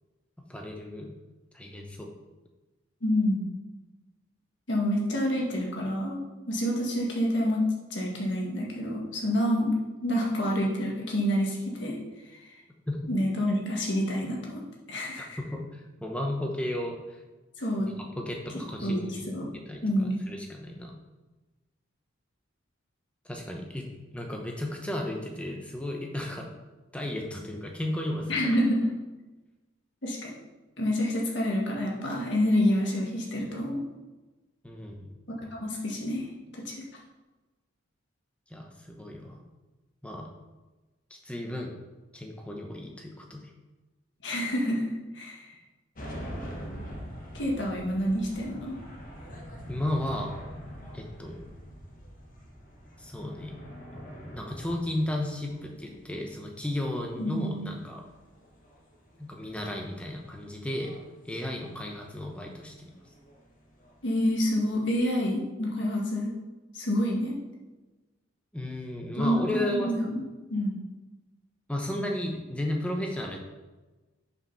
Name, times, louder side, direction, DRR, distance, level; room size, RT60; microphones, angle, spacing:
voice 1, 0.5-1.1 1.5-2.1 12.9-13.1 15.2-17.2 18.2-19.3 19.6-20.9 23.2-23.9 24.1-26.5 26.9-28.5 34.6-35.1 38.5-39.4 40.0-40.3 41.1-41.7 42.1-43.5 49.7-50.4 50.9-51.4 53.0-53.6 54.3-58.0 59.2-61.0 61.2-62.9 68.5-69.9 71.7-73.4, left 1 dB, 5° left, 1 dB, 0.9 m, -34 dB
voice 2, 3.0-3.5 4.7-6.2 6.5-9.7 10.0-12.0 13.1-14.6 14.9-15.4 17.6-17.9 18.8-19.5 19.8-20.2 28.3-28.9 30.0-30.3 30.8-33.8 35.3-36.3 36.5-36.7 44.2-45.5 47.3-48.8 57.2-57.8 64.0-66.3 66.7-67.4 69.2-70.2 70.5-70.8, equal, 60° left, -2 dB, 1.8 m, -28 dB
sound 1, 45.9-65.1, equal, 40° left, 1.2 m, -45 dB
6.1 x 5.3 x 5.6 m, 1.2 s
head